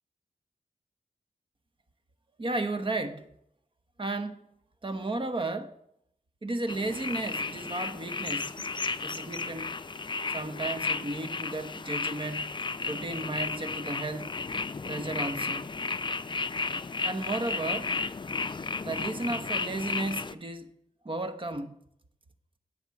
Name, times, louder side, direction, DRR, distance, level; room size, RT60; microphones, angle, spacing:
voice 1, 2.4-3.3 4.0-4.5 4.8-5.8 6.4-8.5 9.0-9.8 10.3-14.3 14.8-15.7 17.0-17.9 18.8-20.7 21.0-21.7, right 2 dB, 40° right, 1.0 m, -34 dB
sound 1, 6.7-20.3, left 4 dB, 35° left, 0.5 m, -33 dB
8.1 x 8.0 x 7.0 m
wide cardioid pair, 75°, 14 cm